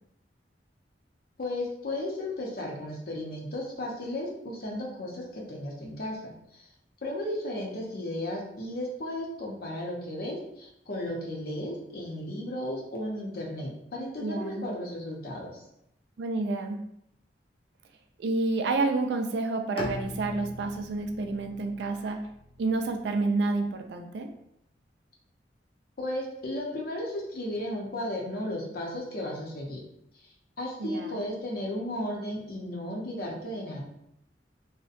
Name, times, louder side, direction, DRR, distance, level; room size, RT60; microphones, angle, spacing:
voice 1, 1.4-6.7 7.0-15.6 26.0-29.8 30.6-33.8, left 1 dB, 60° left, -2 dB, 0.7 m, -34 dB
voice 2, 14.2-14.7 16.2-16.8 18.2-22.2 22.6-24.3 30.8-31.2, right 3 dB, 70° right, 5 dB, 0.3 m, -29 dB
Bowed string instrument, 19.8-23.7, left 2 dB, 35° left, 0.3 m, -41 dB
2.7 x 2.2 x 2.5 m, 0.76 s
head